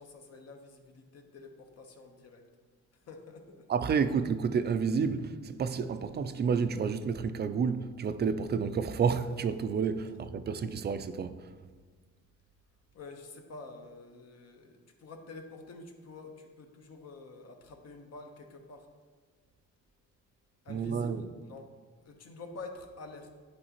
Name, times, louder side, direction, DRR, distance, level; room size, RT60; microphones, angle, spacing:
voice 1, 0.0-2.4 3.1-3.7 12.9-18.9 20.6-21.7 22.0-23.3, left 3 dB, 55° left, 1.0 m, -48 dB
voice 2, 3.7-11.3 20.7-21.3, right 6 dB, 35° right, 0.4 m, -30 dB
10.5 x 4.0 x 2.9 m
cardioid pair, 90°, 30 cm